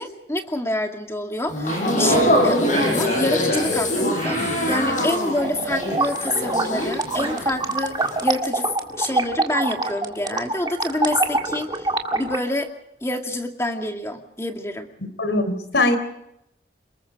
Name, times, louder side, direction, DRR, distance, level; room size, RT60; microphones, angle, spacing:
voice 1, 0.0-8.7 9.0-12.7 13.0-14.9, left 1 dB, 15° left, 4 dB, 2.3 m, -27 dB
sound 1, 1.5-7.7 8.0-8.3, equal, 45° left, 7.1 m, -23 dB
sound 2, 5.4-12.4, right 2 dB, 25° right, 1.9 m, -25 dB
voice 2, 15.2-16.0, left 2 dB, 80° left, 9 dB, 3.8 m, -20 dB
29.0 x 21.0 x 5.0 m, 0.80 s
head